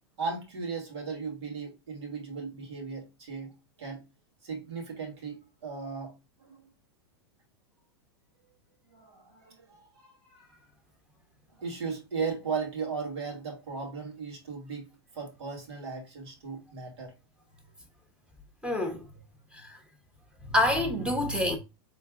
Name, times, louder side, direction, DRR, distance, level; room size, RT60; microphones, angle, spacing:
voice 1, 0.2-3.5 3.8-4.0 4.4-6.1 6.4-6.6 8.9-10.6 11.6-14.9 15.1-17.1, right 5 dB, 80° right, 2.4 m, -37 dB
voice 2, 18.6-19.0 19.5-19.7 20.5-21.6, left 1 dB, 5° right, 1.2 m, -26 dB
4.5 x 3.8 x 2.4 m
hypercardioid pair, 115°, 14 cm